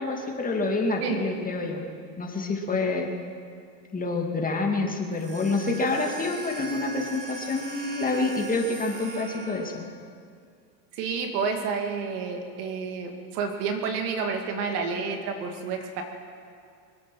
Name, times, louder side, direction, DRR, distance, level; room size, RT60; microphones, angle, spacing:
voice 1, 0.0-1.8 2.2-3.1 3.9-9.7, left 3 dB, 20° left, 1 dB, 2.2 m, -27 dB
sound 1, 5.1-9.9, right 2 dB, 30° right, 3.7 m, -40 dB
voice 2, 10.9-16.0, right 5 dB, 75° right, 4 dB, 2.4 m, -30 dB
24.5 x 8.8 x 6.2 m, 2.3 s
supercardioid pair, 110°, 46 cm